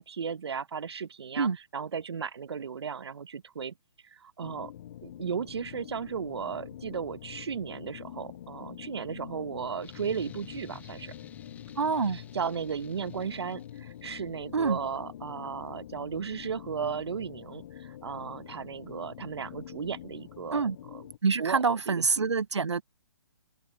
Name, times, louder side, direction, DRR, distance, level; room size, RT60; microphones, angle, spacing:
voice 1, 0.0-3.7 4.0-4.7 5.0-11.1 12.1-20.7 20.9-21.0 21.4-21.6 21.9-22.3, right 6 dB, 70° right, 1.4 m, -35 dB
sound 1, 4.4-21.2, left 11 dB, 40° left, 0.5 m, -46 dB
sound 2, 9.8-14.3, left 8 dB, 10° left, 1.2 m, -53 dB
voice 2, 11.8-12.2 14.5-14.8 20.5-20.8 21.2-22.8, right 5 dB, 85° right, 0.7 m, -26 dB
figure-of-eight pair, 140°, 14 cm